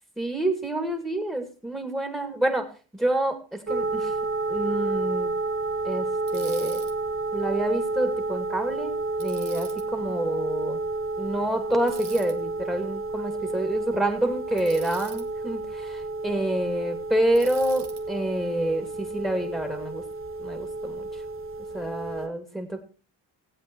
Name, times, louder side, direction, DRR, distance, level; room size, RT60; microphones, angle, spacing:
voice 1, 0.2-4.2 4.5-5.3 5.8-6.8 7.3-10.8 11.2-20.0 20.4-21.2 21.7-22.8, right 1 dB, 5° right, 4 dB, 2.4 m, -28 dB
sound 1, 3.7-22.3, right 3 dB, 25° right, 1.2 m, -30 dB
Bicycle, 6.3-6.9 9.2-9.8 11.9-12.3 14.6-15.2 17.3-18.0, right 7 dB, 55° right, 1.9 m, -43 dB
17.0 x 8.1 x 4.6 m, 0.36 s
supercardioid pair, 65°, 49 cm